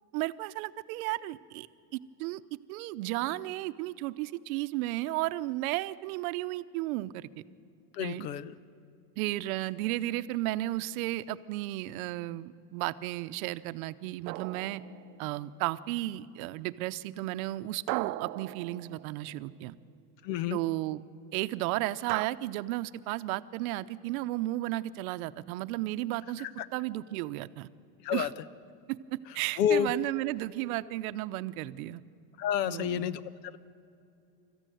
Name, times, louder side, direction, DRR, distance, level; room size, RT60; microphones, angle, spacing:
voice 1, 0.1-1.7 1.9-2.4 2.7-7.3 8.0-8.3 9.2-14.8 15.2-19.8 20.5-21.0 21.3-27.7 28.1-28.3 28.9-32.0 32.6-33.1, right 17 dB, 60° right, 13 dB, 0.8 m, -34 dB
voice 2, 7.9-8.5 20.2-20.6 26.4-26.7 28.0-28.3 29.6-29.9 32.4-33.2, left 9 dB, 75° left, 16 dB, 1.2 m, -29 dB
sound 1, 14.3-15.5 17.9-19.5 22.1-22.3, right 19 dB, 85° right, 0.7 m, -38 dB
27.0 x 14.5 x 9.2 m, 2.6 s
supercardioid pair, 160°, 49 cm